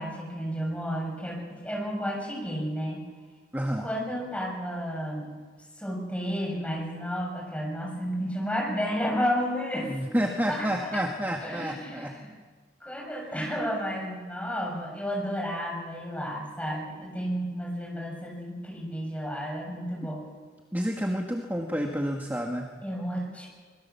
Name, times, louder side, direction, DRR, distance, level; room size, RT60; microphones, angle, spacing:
voice 1, 0.0-3.0 3.8-5.4 5.8-10.0 10.5-11.0 11.4-12.1 12.8-20.3 22.8-23.5, equal, 10° left, 0 dB, 7.0 m, -32 dB
voice 2, 3.5-3.9 9.9-12.2 20.7-22.7, equal, 10° right, 1 dB, 1.7 m, -29 dB
24.5 x 22.0 x 7.1 m, 1.4 s
head